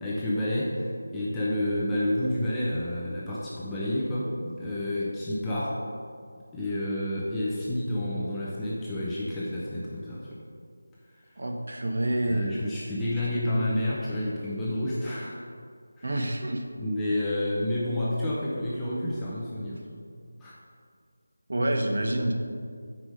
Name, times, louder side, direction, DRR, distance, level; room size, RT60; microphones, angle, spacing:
voice 1, 0.0-5.8 6.5-10.4 12.2-15.4 16.0-16.1 16.8-20.1 20.4-20.6, left 1 dB, 5° left, -8 dB, 0.4 m, -29 dB
voice 2, 11.4-12.6 16.0-16.6 21.5-22.3, right 1 dB, 45° right, 3 dB, 0.8 m, -27 dB
7.6 x 4.8 x 5.0 m, 2.2 s
figure-of-eight pair, 180°, 0 cm